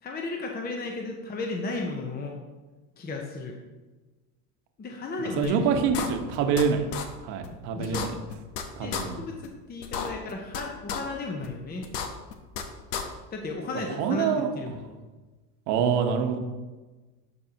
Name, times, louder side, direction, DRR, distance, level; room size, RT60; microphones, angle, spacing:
voice 1, 0.0-2.4 3.0-3.6 4.8-5.8 7.7-8.0 8.8-11.9 13.3-14.3 14.6-15.0, left 3 dB, 20° left, 1 dB, 0.8 m, -34 dB
voice 2, 5.2-6.9 7.2-8.1 8.8-9.2 14.0-14.5 15.7-16.4, right 6 dB, 50° right, 4 dB, 1.3 m, -26 dB
sound 1, 5.4-5.5 5.9-6.6 6.9-7.0 7.4-7.5 7.8-8.6 8.9-9.0 9.4-9.5 9.8-10.6 10.9-11.0 11.4-11.5 11.8-12.6 12.9-13.0, left 7 dB, 75° left, 1.1 m, -32 dB
12.0 x 4.6 x 2.9 m, 1.2 s
supercardioid pair, 105°, 50 cm